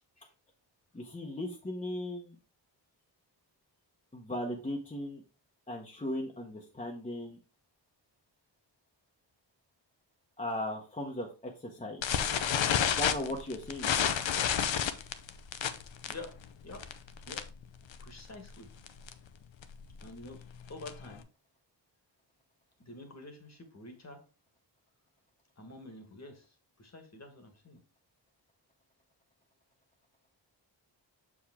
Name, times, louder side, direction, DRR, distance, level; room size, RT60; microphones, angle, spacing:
voice 1, 0.9-2.4 4.1-5.2 5.7-7.4 10.4-12.0 12.8-13.9, left 1 dB, 15° left, 0 dB, 0.9 m, -37 dB
sound 1, 12.0-17.6 17.9-18.2 18.5-18.6 18.9-19.1 19.6-21.2, left 8 dB, 80° left, 0.8 m, -30 dB
voice 2, 18.0-18.7 20.0-20.4 20.7-21.3 22.8-24.2 25.6-27.8, left 2 dB, 35° left, 5 dB, 1.4 m, -48 dB
7.0 x 4.9 x 3.5 m, 0.34 s
wide cardioid pair, 170°, 45 cm